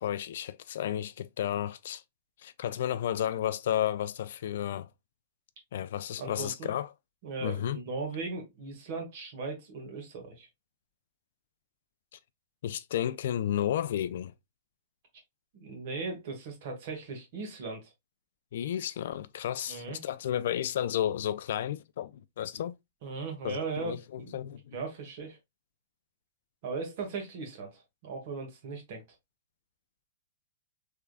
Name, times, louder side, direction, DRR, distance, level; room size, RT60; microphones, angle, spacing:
voice 1, 0.0-2.0 2.4-4.9 5.7-6.9 7.4-7.8 12.6-14.3 18.5-22.8 23.4-24.8, left 10 dB, 55° left, 0.3 m, -32 dB
voice 2, 6.2-6.7 7.2-10.5 15.5-17.9 19.7-20.0 23.0-24.4 24.7-25.4 26.6-29.0, right 4 dB, 40° right, 1.5 m, -38 dB
3.5 x 3.3 x 2.2 m
supercardioid pair, 175°, 0 cm